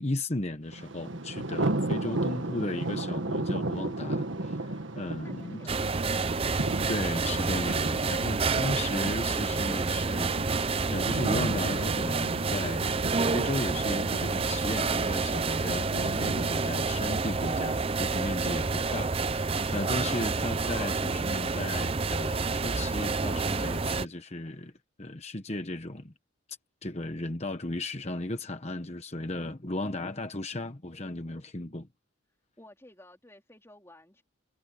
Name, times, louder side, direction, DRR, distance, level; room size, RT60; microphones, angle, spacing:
voice 1, 0.0-4.7 4.9-5.6 6.9-24.7 25.0-26.1 26.8-31.9, left 1 dB, 30° left, 1.2 m, -35 dB
Thunder, 0.7-17.7, right 2 dB, 65° right, 1.5 m, -35 dB
voice 2, 5.2-6.4 29.8-30.1 32.6-34.2, left 1 dB, 15° left, 3.9 m, -53 dB
sound 1, 5.7-24.1, right 4 dB, 25° right, 0.5 m, -29 dB
head